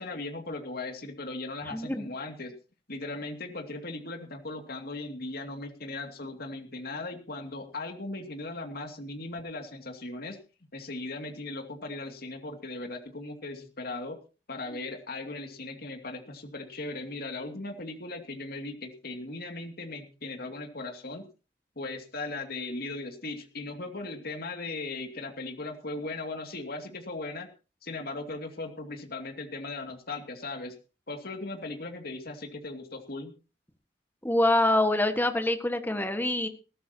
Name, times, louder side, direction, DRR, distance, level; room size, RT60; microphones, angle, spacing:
voice 1, 0.0-2.5 2.9-10.4 10.7-14.2 14.5-21.3 21.8-27.5 27.8-30.7 31.1-33.3, left 2 dB, 60° left, 4 dB, 2.6 m, -38 dB
voice 2, 1.7-2.1 34.2-36.5, left 1 dB, 10° left, 7 dB, 1.7 m, -25 dB
20.0 x 15.0 x 2.9 m, 0.34 s
head